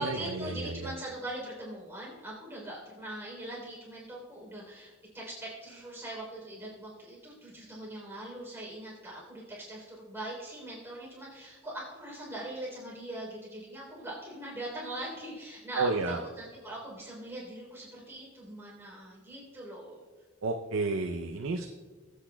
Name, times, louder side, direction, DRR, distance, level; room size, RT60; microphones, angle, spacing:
voice 1, 0.0-20.0, right 1 dB, 10° right, -4 dB, 3.4 m, -41 dB
voice 2, 0.6-0.9 15.8-16.2 20.4-21.7, right 3 dB, 80° right, 3 dB, 0.6 m, -30 dB
21.0 x 8.3 x 2.2 m, 1.3 s
head